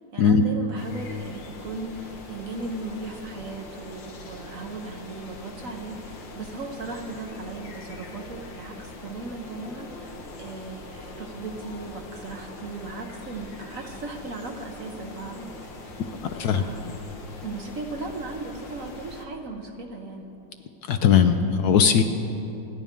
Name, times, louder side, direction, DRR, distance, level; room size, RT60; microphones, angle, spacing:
voice 1, 0.1-15.5 15.8-16.1 16.4-16.9 17.4-20.3, right 3 dB, 50° right, 3 dB, 1.2 m, -37 dB
sound 1, 0.8-19.3, left 2 dB, 90° left, 2.0 m, -42 dB
voice 2, 16.2-16.6 20.9-22.0, left 7 dB, 70° left, 7 dB, 1.0 m, -19 dB
26.5 x 10.5 x 3.7 m, 2.9 s
omnidirectional pair, 2.0 m